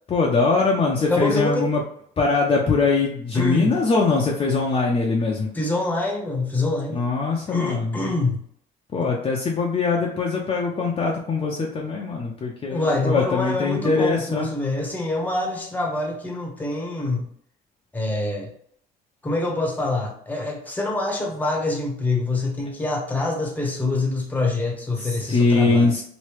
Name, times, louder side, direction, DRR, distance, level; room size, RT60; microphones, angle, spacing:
voice 1, 0.1-1.8 2.2-5.5 6.9-8.0 8.9-14.5 25.0-26.0, left 4 dB, 30° left, -2 dB, 0.6 m, -22 dB
voice 2, 1.0-1.7 3.3-3.8 5.5-7.0 7.5-8.4 12.7-17.3 17.9-18.5 19.2-26.0, left 2 dB, 10° left, 0 dB, 0.9 m, -25 dB
3.1 x 2.7 x 3.1 m, 0.63 s
cardioid pair, 110°, 17 cm